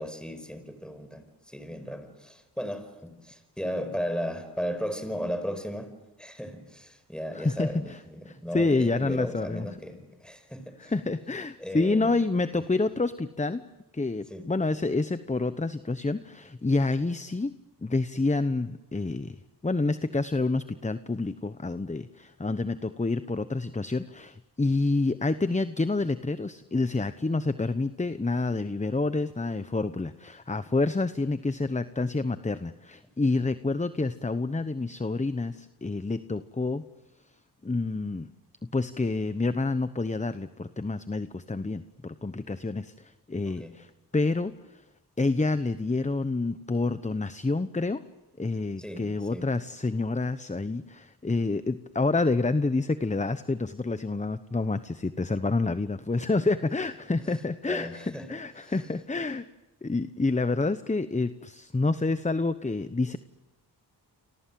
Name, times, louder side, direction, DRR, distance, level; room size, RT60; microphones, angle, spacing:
voice 1, 0.0-5.9 6.2-10.9 11.6-12.1 12.5-12.6 14.3-14.5 43.5-43.8 48.8-49.5 57.2-57.4 57.7-58.9, equal, ahead, 9 dB, 5.2 m, -36 dB
voice 2, 7.3-7.7 8.3-9.7 10.8-13.6 13.9-17.5 17.8-19.4 19.6-36.8 37.6-38.3 38.7-44.5 45.2-48.0 48.4-59.5 59.8-63.2, left 3 dB, 15° left, 12 dB, 1.0 m, -28 dB
29.5 x 25.5 x 7.7 m, 1.0 s
cardioid pair, 60°, 40 cm